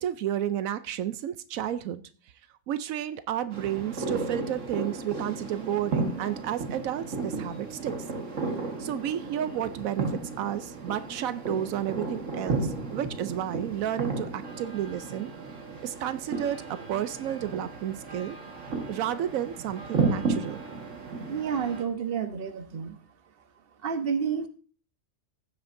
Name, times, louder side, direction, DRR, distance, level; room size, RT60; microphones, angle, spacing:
voice 1, 0.0-2.0 2.7-8.0 8.8-15.3 15.8-18.4 18.9-20.6, right 11 dB, 85° right, 13 dB, 1.0 m, -31 dB
sound 1, 3.5-21.8, right 3 dB, 65° right, 1.9 m, -34 dB
voice 2, 21.3-22.9 23.8-24.5, right 7 dB, 50° right, 9 dB, 1.2 m, -30 dB
15.5 x 7.8 x 2.6 m, 0.40 s
omnidirectional pair, 1.4 m